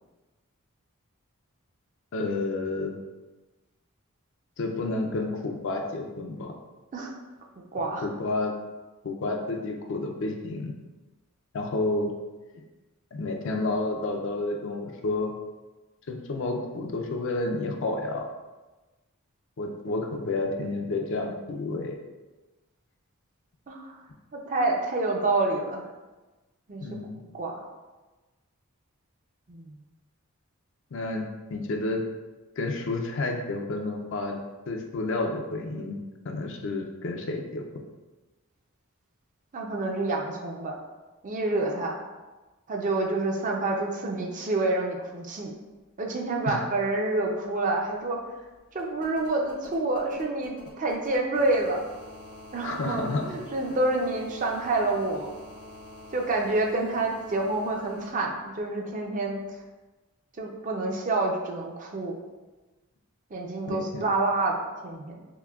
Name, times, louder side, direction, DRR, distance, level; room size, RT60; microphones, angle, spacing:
voice 1, 2.1-2.9 4.6-6.5 8.0-8.5 9.0-10.7 11.5-12.1 13.1-15.3 16.1-18.3 19.6-22.0 26.8-27.2 30.9-32.0 32.6-34.4 34.7-36.0 36.2-37.6 46.5-46.6 52.6-53.3 63.7-64.1, left 2 dB, 60° left, 2 dB, 0.4 m, -30 dB
voice 2, 7.7-8.1 23.7-24.0 24.3-25.9 26.7-26.9 27.3-27.6 29.5-29.7 39.5-40.8 41.2-42.0 42.7-45.5 46.0-48.2 48.7-51.8 52.5-55.3 56.1-59.4 60.4-62.2 63.3-65.2, right 2 dB, 35° right, 0 dB, 0.4 m, -28 dB
sound 1, 47.2-58.1 59.5-59.6, left 1 dB, 80° left, 1.0 m, -48 dB
5.7 x 2.1 x 2.3 m, 1.2 s
head